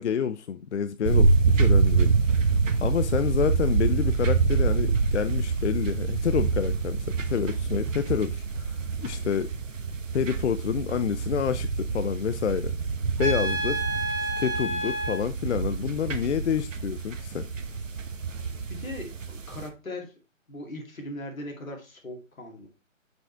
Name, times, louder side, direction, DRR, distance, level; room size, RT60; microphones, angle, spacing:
voice 1, 0.0-2.4 2.8-9.5 10.1-12.7 13.2-13.9 14.2-17.5, left 8 dB, 60° left, 0.5 m, -28 dB
sound 1, 1.0-19.7, right 4 dB, 70° right, 1.0 m, -26 dB
Trumpet, 13.2-15.2, right 1 dB, 10° right, 1.0 m, -29 dB
voice 2, 18.7-20.1 20.5-22.7, left 1 dB, 90° left, 2.5 m, -39 dB
6.3 x 5.1 x 3.3 m
hypercardioid pair, 155°, 40 cm